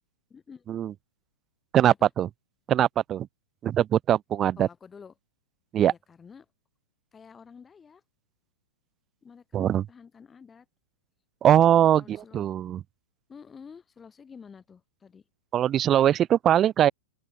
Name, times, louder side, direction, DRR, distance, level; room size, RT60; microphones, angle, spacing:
voice 1, 0.3-0.7 2.0-2.1 4.6-5.1 5.9-6.5 7.1-8.0 9.2-10.7 11.5-12.6 13.3-15.2, left 6 dB, 15° left, 8.0 m, -49 dB
voice 2, 1.7-2.3 2.7-3.3 3.6-4.7 5.7-5.9 9.5-9.8 11.4-12.8 15.5-16.9, right 10 dB, 30° right, 0.4 m, -21 dB
open air
hypercardioid pair, 115°, 0 cm